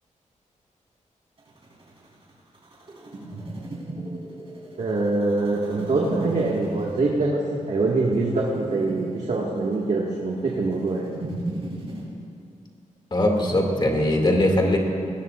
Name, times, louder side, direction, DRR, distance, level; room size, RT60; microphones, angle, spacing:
sound 1, 1.4-12.0, right 2 dB, 45° right, 4.0 m, -37 dB
voice 1, 4.8-7.4 7.7-11.1 13.7-13.9, right 3 dB, 60° right, -3 dB, 1.7 m, -24 dB
voice 2, 13.1-14.8, left 1 dB, 35° left, 0 dB, 2.3 m, -20 dB
20.0 x 18.0 x 2.5 m, 2.4 s
wide cardioid pair, 110°, 13 cm